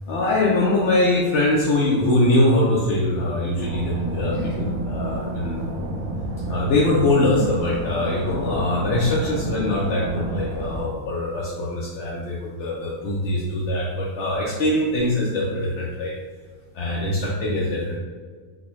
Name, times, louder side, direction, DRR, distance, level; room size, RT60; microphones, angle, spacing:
voice 1, 0.1-5.6 6.5-16.1 16.7-18.0, left 1 dB, 65° left, -5 dB, 0.8 m, -22 dB
sound 1, 3.6-10.9, right 2 dB, 70° right, 1.0 m, -30 dB
3.9 x 2.1 x 3.0 m, 1.5 s
omnidirectional pair, 1.5 m